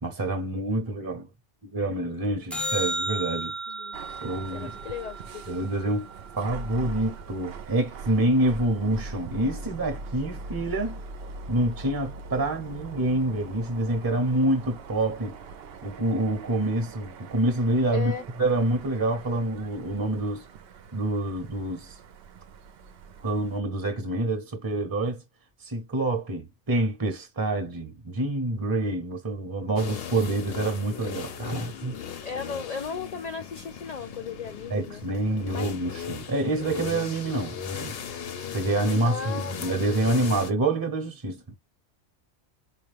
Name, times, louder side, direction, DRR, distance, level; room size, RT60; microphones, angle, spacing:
voice 1, 0.0-1.3 1.6-3.5 4.2-4.8 5.5-6.1 6.4-11.0 11.5-15.3 15.8-18.1 18.4-20.4 20.9-21.9 23.2-25.2 25.6-31.9 34.7-38.0 38.5-41.5, right 2 dB, 20° right, 0.8 m, -27 dB
sound 1, 2.5-7.0 13.5-13.6, right 1 dB, ahead, 0.3 m, -34 dB
sound 2, 3.9-23.6, right 3 dB, 65° right, 0.7 m, -42 dB
voice 2, 4.5-5.6 17.9-18.2 32.2-35.0 35.5-35.7 39.0-40.0, left 6 dB, 80° left, 0.3 m, -36 dB
sound 3, 29.7-40.5, left 8 dB, 60° left, 0.8 m, -37 dB
4.6 x 2.5 x 3.3 m
omnidirectional pair, 1.3 m